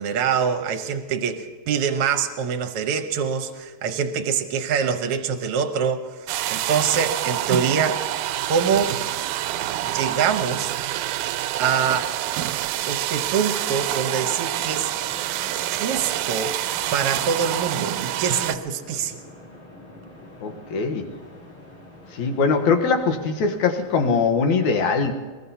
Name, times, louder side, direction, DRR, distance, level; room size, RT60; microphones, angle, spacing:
voice 1, 0.0-8.1 8.5-9.0 9.8-10.8 11.2-11.3 11.6-12.1 12.9-14.9 15.7-16.6 16.9-19.2, right 7 dB, 60° right, 7 dB, 1.7 m, -24 dB
sound 1, 6.3-18.6, right 13 dB, 85° right, 2.1 m, -27 dB
sound 2, 13.6-24.1, left 2 dB, 50° left, 4.7 m, -45 dB
voice 2, 20.4-21.1 22.1-25.1, left 4 dB, 75° left, 4 dB, 2.5 m, -21 dB
23.5 x 20.5 x 2.8 m, 1.5 s
omnidirectional pair, 3.4 m